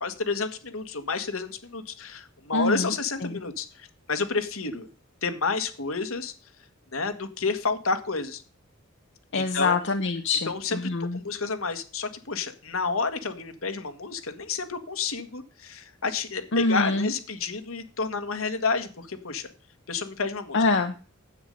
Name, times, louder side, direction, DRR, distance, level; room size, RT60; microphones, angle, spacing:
voice 1, 0.0-4.9 5.2-6.3 6.9-8.4 9.3-9.8 10.5-10.8 11.1-19.5 19.9-20.6, left 4 dB, 75° left, 8 dB, 1.7 m, -30 dB
voice 2, 2.5-2.9 3.2-3.4 9.3-11.2 16.5-17.1 20.5-20.9, left 3 dB, 60° left, 6 dB, 0.9 m, -25 dB
9.9 x 8.2 x 5.4 m, 0.36 s
head